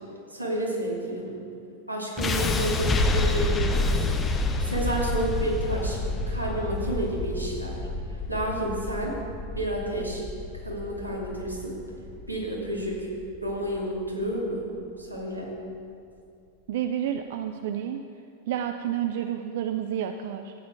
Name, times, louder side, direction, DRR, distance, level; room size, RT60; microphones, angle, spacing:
voice 1, 0.3-1.4 1.9-4.1 4.6-6.0 6.3-7.8 8.1-9.1 9.5-10.2 10.6-11.8 12.3-13.1 13.4-14.6 15.0-15.5, right 1 dB, 90° right, -4 dB, 2.7 m, -30 dB
sound 1, 2.2-14.2, left 2 dB, 20° left, 0.9 m, -29 dB
voice 2, 16.7-18.0 18.5-20.5, right 10 dB, 55° right, 7 dB, 0.5 m, -30 dB
14.5 x 9.4 x 4.6 m, 2.4 s
figure-of-eight pair, 90°, 0 cm